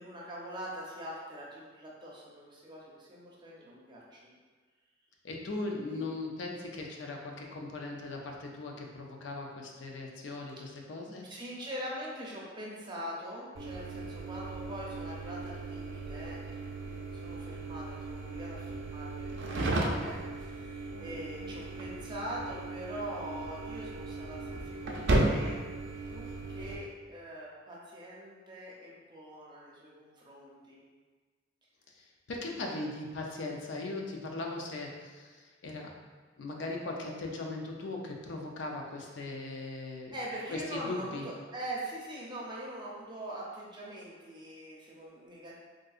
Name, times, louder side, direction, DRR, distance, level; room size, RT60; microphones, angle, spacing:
voice 1, 0.0-4.3 5.7-6.1 11.0-25.6 26.1-30.8 40.1-45.5, right 1 dB, 25° right, -5 dB, 0.6 m, -43 dB
voice 2, 5.2-11.3 31.9-36.0 36.4-40.1 40.5-41.3, left 2 dB, 80° left, 0 dB, 0.5 m, -39 dB
sound 1, 13.6-26.8, right 2 dB, 75° right, 0.4 m, -35 dB
3.6 x 2.6 x 2.4 m, 1.4 s
head